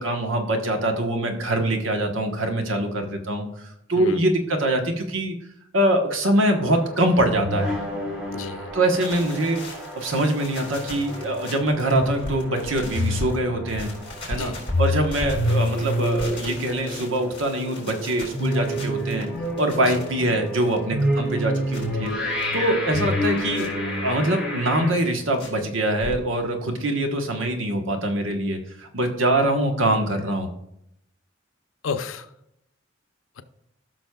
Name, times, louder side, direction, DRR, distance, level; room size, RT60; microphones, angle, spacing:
voice 1, 0.0-3.5 3.9-5.3 5.7-7.7 8.7-9.6 9.9-13.9 14.3-14.5 14.8-19.3 19.6-22.1 22.5-23.7 24.0-30.5, right 1 dB, 85° right, 4 dB, 1.2 m, -23 dB
voice 2, 4.0-4.3 8.3-8.7 14.4-14.6 19.8-20.0 31.8-32.3 33.4-33.5, left 5 dB, 90° left, 10 dB, 0.6 m, -32 dB
sound 1, 6.5-24.9, equal, 5° right, 2.4 m, -28 dB
sound 2, 8.7-13.4 13.7-22.5 22.8-23.7 24.2-24.3 24.7-25.5 25.7-26.5 26.8-26.9 27.1-27.2 27.4-27.5, left 1 dB, 30° left, 3.7 m, -38 dB
16.5 x 6.1 x 2.3 m, 0.79 s
head